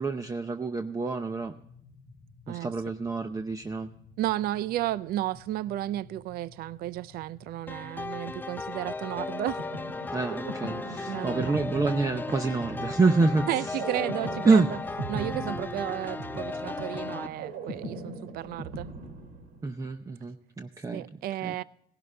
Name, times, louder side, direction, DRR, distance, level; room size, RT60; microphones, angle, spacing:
voice 1, 0.0-1.6 2.5-3.9 10.1-13.7 14.4-14.7 19.6-21.1 21.4-21.6, right 3 dB, 20° right, 0.7 m, -27 dB
sound 1, 1.4-12.2, left 2 dB, 55° left, 1.0 m, -53 dB
voice 2, 4.2-9.6 11.1-11.6 13.5-14.6 15.1-18.9 20.9-21.6, right 14 dB, 65° right, 0.4 m, -33 dB
sound 2, 7.7-17.3, left 3 dB, 10° left, 0.4 m, -36 dB
sound 3, 9.3-19.8, right 3 dB, 90° right, 2.3 m, -39 dB
18.0 x 11.5 x 3.3 m
cardioid pair, 110°, 17 cm